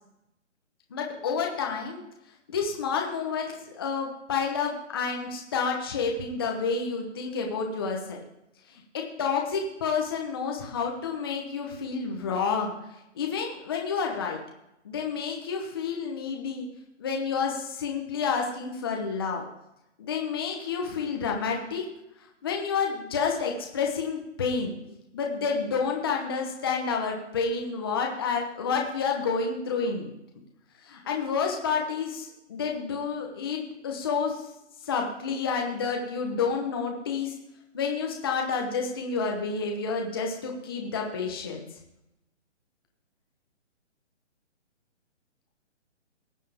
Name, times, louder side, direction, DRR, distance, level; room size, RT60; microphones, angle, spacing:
voice 1, 0.9-2.0 2.5-8.2 8.7-12.7 13.1-14.4 14.8-16.7 17.0-19.4 20.0-21.9 22.4-24.7 25.1-30.1 30.8-34.4 34.9-37.3 37.7-41.7, left 5 dB, 20° left, 1 dB, 1.0 m, -29 dB
19.5 x 7.5 x 3.5 m, 0.85 s
hypercardioid pair, 175°, 37 cm